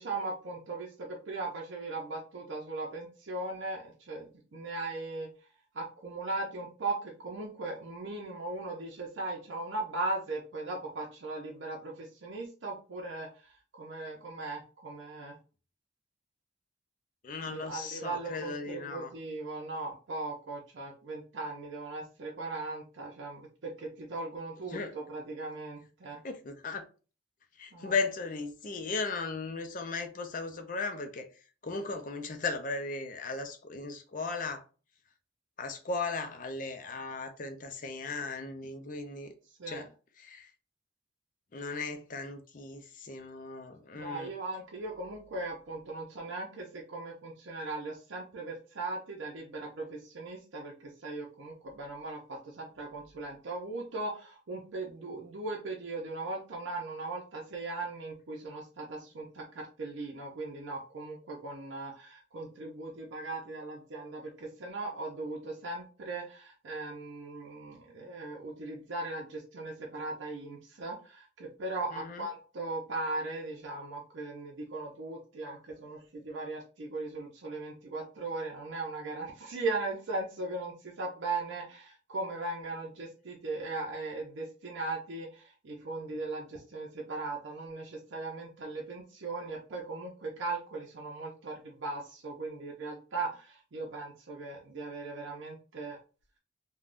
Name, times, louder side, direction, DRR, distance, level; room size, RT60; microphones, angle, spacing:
voice 1, 0.0-5.3 5.7-15.4 17.4-26.2 27.7-27.9 39.6-39.8 43.9-96.0, right 2 dB, 80° right, 0.6 m, -38 dB
voice 2, 17.2-19.1 24.7-24.9 26.2-26.8 27.6-31.3 31.6-34.6 35.6-39.3 39.7-39.9 40.2-40.5 41.5-44.3 71.9-72.3, left 4 dB, 45° left, 0.5 m, -36 dB
3.4 x 2.2 x 2.5 m
head